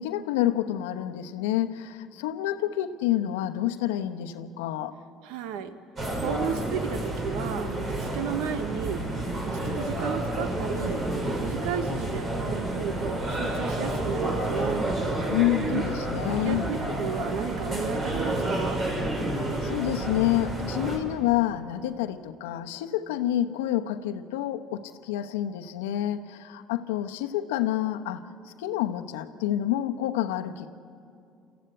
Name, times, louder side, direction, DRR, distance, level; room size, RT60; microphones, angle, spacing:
voice 1, 0.0-4.9 15.3-16.7 19.3-30.7, left 13 dB, 85° left, 8 dB, 1.0 m, -28 dB
voice 2, 5.2-5.7 6.2-9.1 9.4-11.0 11.4-14.9 15.6-16.1 16.4-18.8, right 8 dB, 75° right, 11 dB, 1.3 m, -34 dB
sound 1, 6.0-21.0, right 1 dB, 45° right, 5.4 m, -30 dB
28.5 x 14.5 x 8.1 m, 2.4 s
hypercardioid pair, 70°, 0 cm